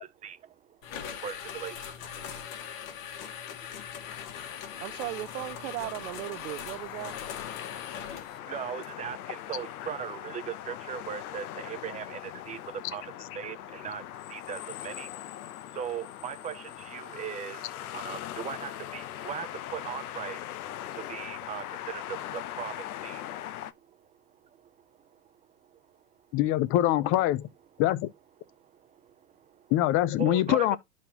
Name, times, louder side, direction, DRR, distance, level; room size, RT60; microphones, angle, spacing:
voice 1, 0.0-2.1 2.4-3.0 3.3-3.4 3.7-4.8 6.9-15.1 15.4-20.4 20.9-23.2 23.9-24.1 24.4-24.7 25.0-25.2 25.7-25.8 28.6-29.7 30.2-30.8, right 8 dB, 15° right, 0.5 m, -40 dB
sound 1, 0.8-8.4, left 8 dB, 65° left, 1.9 m, -41 dB
sound 2, 4.0-23.7, left 12 dB, 85° left, 0.9 m, -41 dB
voice 2, 4.8-7.2, right 18 dB, 75° right, 0.6 m, -37 dB
voice 3, 26.3-27.5 27.8-28.1 29.7-30.8, left 14 dB, 30° left, 0.5 m, -24 dB
12.0 x 4.2 x 2.9 m
supercardioid pair, 140°, 43 cm